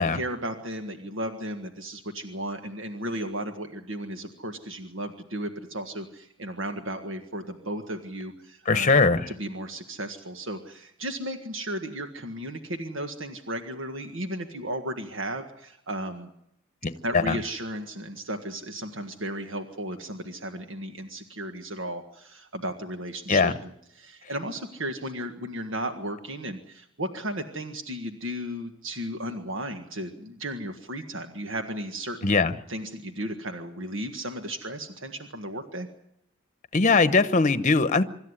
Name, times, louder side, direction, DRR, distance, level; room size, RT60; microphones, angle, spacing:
voice 1, 0.0-8.9 9.3-16.3 17.0-32.3 32.7-35.9, right 1 dB, 70° right, 5 dB, 1.7 m, -35 dB
voice 2, 8.7-9.2 16.8-17.4 23.3-23.5 32.2-32.5 36.7-38.0, left 4 dB, 35° left, 12 dB, 0.9 m, -21 dB
25.5 x 13.0 x 9.8 m, 0.80 s
head